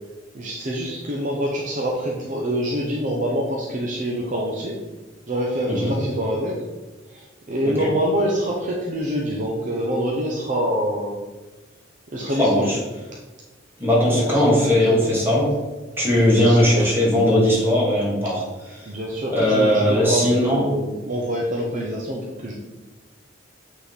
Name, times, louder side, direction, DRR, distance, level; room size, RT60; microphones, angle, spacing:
voice 1, 0.3-4.8 5.3-6.6 7.1-11.2 12.1-12.8 14.1-15.1 16.3-16.9 18.9-22.5, equal, 40° right, -2 dB, 0.8 m, -26 dB
voice 2, 12.4-12.8 13.8-15.6 16.0-18.4 18.8-18.9 19.3-20.7, left 1 dB, 10° right, -5 dB, 2.1 m, -19 dB
8.5 x 4.0 x 4.1 m, 1.2 s
head